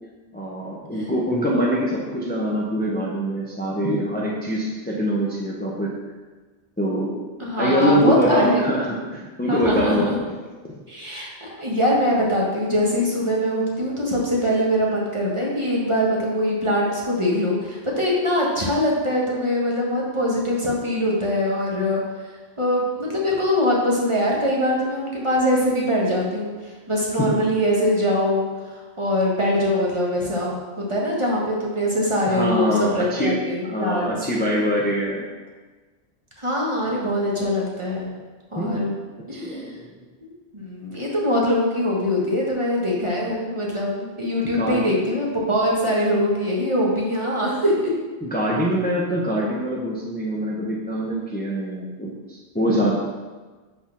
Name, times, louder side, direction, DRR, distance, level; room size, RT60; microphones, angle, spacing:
voice 1, 0.3-5.9 6.8-7.2 7.5-10.2 27.2-27.3 32.3-33.3 33.6-35.2 38.6-38.8 39.3-39.8 44.5-45.0 48.2-53.0, equal, 10° left, -4 dB, 0.8 m, -24 dB
voice 2, 7.4-8.6 9.5-10.2 10.9-22.0 22.6-34.1 36.4-38.1 38.5-38.9 39.3-39.8 40.5-47.9, left 1 dB, 30° right, -4 dB, 1.4 m, -23 dB
6.0 x 4.3 x 6.1 m, 1.3 s
omnidirectional pair, 1.1 m